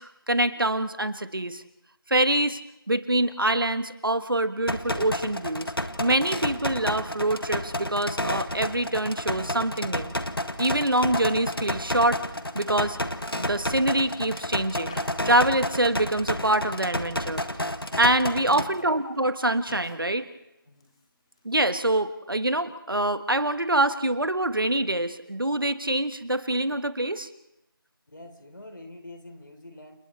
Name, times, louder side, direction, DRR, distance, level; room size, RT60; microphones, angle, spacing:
voice 1, 0.0-1.6 2.1-2.6 2.9-5.7 6.0-10.1 10.6-12.2 12.5-13.0 13.4-15.0 15.2-17.4 18.0-20.3 21.4-27.3, right 1 dB, 65° right, 11 dB, 1.5 m, -25 dB
sound 1, 4.7-18.7, left 1 dB, 75° left, 1.6 m, -31 dB
sound 2, 11.1-12.8 13.1-15.5 15.8-16.2 16.5-18.0 18.5-21.6, left 2 dB, 15° left, 1.7 m, -51 dB
voice 2, 18.4-18.9 20.7-20.9 28.1-30.0, left 1 dB, 60° left, 6 dB, 3.6 m, -44 dB
30.0 x 28.5 x 3.3 m, 0.87 s
figure-of-eight pair, 170°, 12 cm